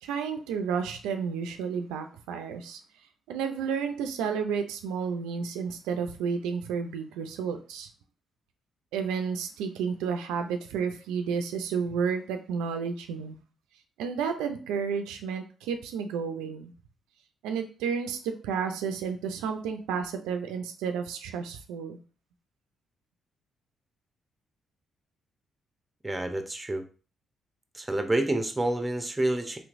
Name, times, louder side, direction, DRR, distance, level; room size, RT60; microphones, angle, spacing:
voice 1, 0.0-2.8 3.3-7.9 8.9-13.4 14.0-16.7 17.4-22.0, right 6 dB, 85° right, 6 dB, 0.3 m, -31 dB
voice 2, 26.0-26.8 27.7-29.6, right 1 dB, 15° right, 6 dB, 0.7 m, -28 dB
3.2 x 3.0 x 2.5 m, 0.37 s
supercardioid pair, 55°, 0 cm